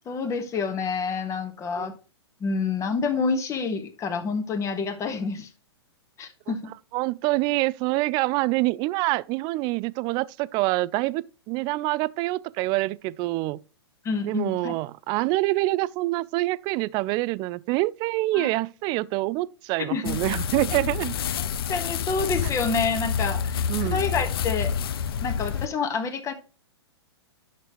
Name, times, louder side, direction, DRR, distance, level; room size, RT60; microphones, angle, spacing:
voice 1, 0.0-1.9 2.4-5.5 6.2-6.6 14.0-14.7 18.3-18.5 19.9-20.2 21.7-24.7 25.2-26.3, left 4 dB, 20° left, 1.5 m, -28 dB
voice 2, 6.9-13.6 14.2-21.1 23.7-24.0, right 19 dB, 30° right, 0.4 m, -26 dB
sound 1, 20.1-25.7, left 7 dB, 60° left, 0.6 m, -28 dB
11.0 x 6.7 x 3.1 m
hypercardioid pair, 115°, 14 cm